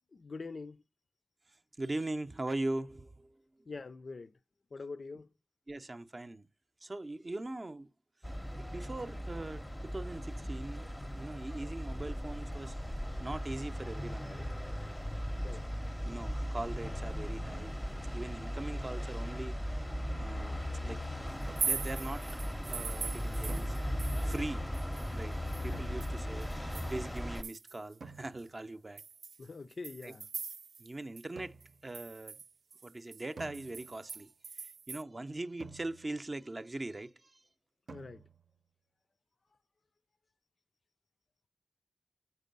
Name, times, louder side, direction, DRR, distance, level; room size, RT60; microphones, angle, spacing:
voice 1, 0.1-0.8 3.7-4.3 4.7-5.3 15.4-15.6 29.4-30.3 37.9-38.2, left 4 dB, 50° left, 0.4 m, -44 dB
voice 2, 1.8-3.4 5.7-6.5 6.8-7.9 8.5-12.8 13.2-14.5 15.5-15.6 16.0-17.8 18.1-19.8 20.2-21.0 21.6-23.8 24.2-24.7 25.1-29.0 30.0-30.1 30.8-31.6 31.8-32.4 32.8-34.3 34.6-37.4, right 2 dB, 30° right, 0.6 m, -41 dB
sound 1, 8.2-27.4, equal, 5° left, 0.7 m, -37 dB
sound 2, 21.4-24.5 24.7-27.9 28.4-28.5 29.0-30.9 31.2-31.3 31.6-35.0, right 5 dB, 90° right, 0.4 m, -41 dB
sound 3, 21.5-22.0 23.5-24.3 25.7-26.5 28.0-28.7 31.4-31.9 33.4-34.2 35.6-36.4 37.9-38.6, right 4 dB, 65° right, 0.8 m, -52 dB
8.2 x 4.5 x 5.2 m
wide cardioid pair, 125°, 0 cm